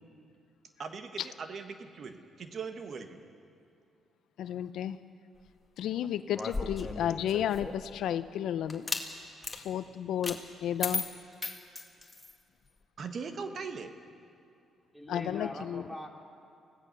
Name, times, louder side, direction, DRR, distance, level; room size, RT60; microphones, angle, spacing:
voice 1, 0.8-3.2 13.0-13.9, right 5 dB, 55° right, 1.4 m, -40 dB
voice 2, 4.4-5.0 5.8-8.9 9.5-11.0 15.1-15.9, left 10 dB, 75° left, 0.6 m, -32 dB
sound 1, 6.3-7.9 8.7-9.1 9.4-9.6 10.2-10.4 10.8-12.3, left 3 dB, 20° left, 2.0 m, -36 dB
voice 3, 14.9-16.1, left 1 dB, ahead, 2.8 m, -42 dB
24.5 x 16.5 x 6.7 m
cardioid pair, 90°, 0 cm